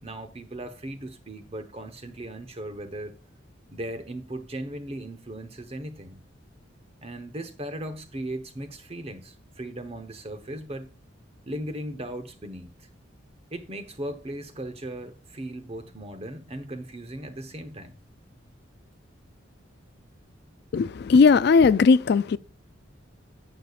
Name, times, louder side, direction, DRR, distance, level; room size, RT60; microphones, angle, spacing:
voice 1, 0.0-3.2 3.7-6.2 7.0-10.9 11.5-12.9 13.5-17.9, right 1 dB, 30° right, 1.0 m, -37 dB
voice 2, 20.7-22.4, left 5 dB, 55° left, 0.3 m, -18 dB
11.0 x 8.4 x 2.4 m
head